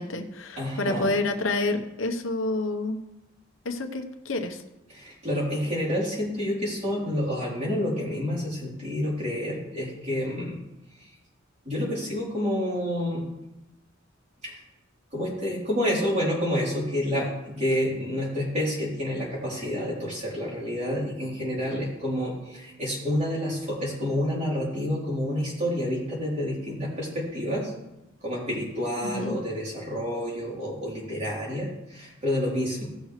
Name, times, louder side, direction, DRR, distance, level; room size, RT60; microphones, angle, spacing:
voice 1, 0.0-3.0 3.6-4.6 29.0-29.4, left 2 dB, 85° left, 6 dB, 1.0 m, -28 dB
voice 2, 0.6-1.1 4.9-10.6 11.7-13.3 14.4-14.6 15.1-27.7 28.2-32.9, left 1 dB, 35° right, -5 dB, 3.7 m, -29 dB
17.0 x 6.5 x 3.3 m, 0.91 s
head